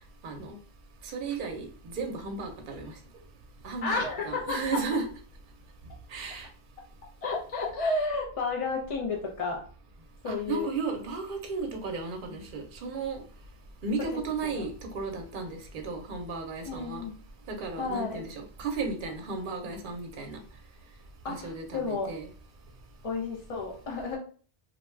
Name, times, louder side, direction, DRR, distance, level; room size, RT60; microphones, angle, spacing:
voice 1, 0.2-0.6 1.0-2.9 3.6-5.1 6.1-6.5 10.3-13.2 13.8-17.0 17.5-20.4 21.3-22.3, right 4 dB, 60° right, 3 dB, 0.7 m, -34 dB
voice 2, 3.8-4.6 7.2-9.6 10.2-10.7 14.1-14.7 16.7-17.1 17.8-18.2 21.2-22.1 23.0-24.2, left 3 dB, 45° left, -2 dB, 0.5 m, -32 dB
2.5 x 2.2 x 3.1 m, 0.41 s
omnidirectional pair, 1.0 m